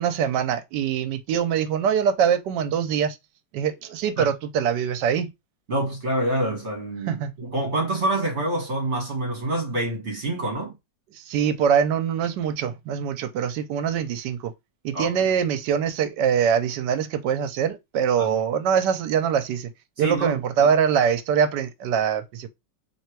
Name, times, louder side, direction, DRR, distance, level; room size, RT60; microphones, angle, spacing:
voice 1, 0.0-3.2 3.5-5.3 7.1-7.3 11.2-14.5 14.8-19.7 20.0-22.5, right 8 dB, 80° right, 1.2 m, -23 dB
voice 2, 5.7-10.7 14.9-15.3 18.2-18.3 20.0-20.4, right 1 dB, 40° right, 1.6 m, -27 dB
3.3 x 3.1 x 4.5 m
omnidirectional pair, 1.9 m